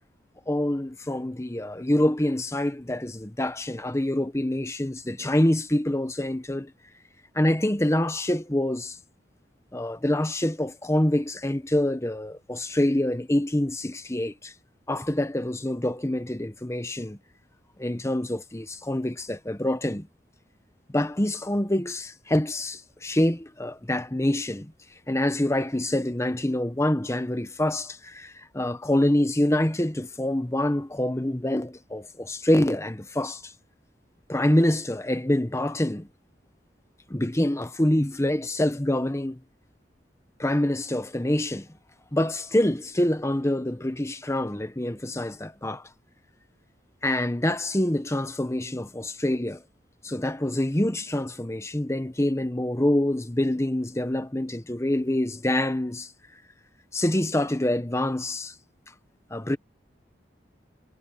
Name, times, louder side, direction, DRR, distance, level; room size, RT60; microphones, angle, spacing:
voice 1, 0.5-6.7 7.3-9.0 9.7-14.5 14.9-17.2 17.8-20.1 20.9-24.7 25.1-33.5 34.3-36.1 37.1-39.4 40.4-41.7 42.1-45.8 47.0-49.6 50.0-56.1 56.9-58.5 59.3-59.6, left 1 dB, 15° left, 1.1 m, -26 dB
head